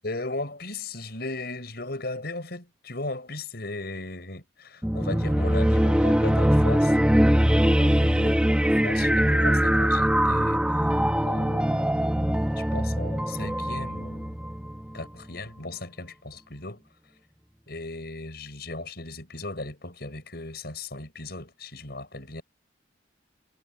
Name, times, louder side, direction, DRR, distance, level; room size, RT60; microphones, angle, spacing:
voice 1, 0.0-7.0 7.8-8.4 8.8-14.4 14.9-16.8 17.7-22.4, left 2 dB, 60° left, 6.9 m, -36 dB
sound 1, 4.8-15.0, equal, 5° right, 1.1 m, -22 dB
head